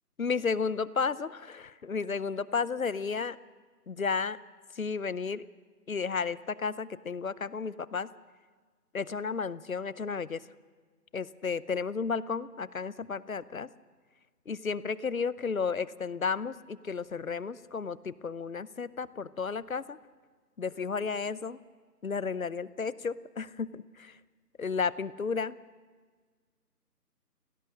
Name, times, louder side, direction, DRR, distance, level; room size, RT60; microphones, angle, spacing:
voice 1, 0.2-3.4 3.9-4.4 4.7-5.4 5.9-8.1 8.9-10.4 11.1-13.7 14.5-20.0 20.6-21.6 22.0-24.2 24.6-25.6, left 5 dB, 55° left, 18 dB, 0.7 m, -33 dB
26.5 x 17.5 x 6.4 m, 1.5 s
figure-of-eight pair, 170°, 49 cm